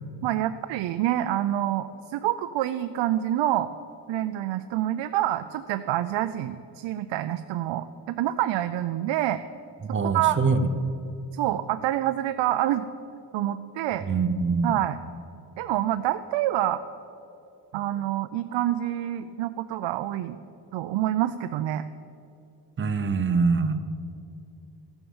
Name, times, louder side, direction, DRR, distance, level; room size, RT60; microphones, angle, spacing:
voice 1, 0.2-3.7 4.1-9.4 10.0-10.4 11.3-12.9 13.3-14.0 14.6-15.0 15.6-16.8 17.7-20.4 20.7-21.8, right 13 dB, 85° right, 10 dB, 0.6 m, -27 dB
voice 2, 9.9-10.6 14.1-14.7 22.8-23.8, right 4 dB, 25° right, 10 dB, 0.6 m, -24 dB
14.5 x 7.1 x 7.1 m, 2.7 s
cardioid pair, 170°, 44 cm